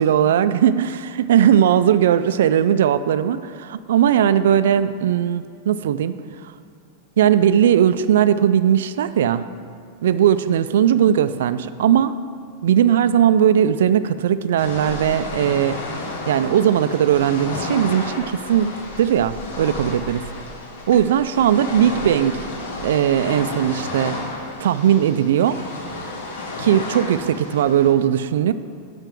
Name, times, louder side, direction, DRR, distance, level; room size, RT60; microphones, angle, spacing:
voice 1, 0.0-6.2 6.4-6.5 7.2-9.5 10.0-12.2 12.6-15.8 16.3-20.2 20.9-22.4 22.8-24.2 24.6-25.6 26.6-28.5, right 9 dB, 80° right, 12 dB, 0.3 m, -18 dB
sound 1, 14.6-27.9, left 2 dB, 85° left, 1.4 m, -32 dB
6.8 x 5.8 x 6.0 m, 2.2 s
supercardioid pair, 170°, 0 cm